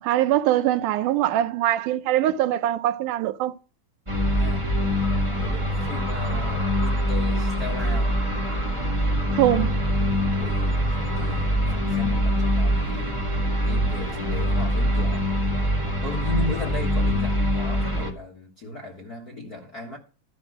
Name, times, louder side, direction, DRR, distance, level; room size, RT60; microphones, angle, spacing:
voice 1, 0.0-3.5 9.3-9.8, right 13 dB, 90° right, 2.2 m, -22 dB
sound 1, 4.1-18.1, equal, 20° right, 0.8 m, -24 dB
voice 2, 4.3-4.7 5.2-8.2 10.4-13.2 13.6-15.3 16.0-20.0, left 2 dB, 40° left, 1.4 m, -36 dB
12.5 x 6.3 x 6.0 m
omnidirectional pair, 3.5 m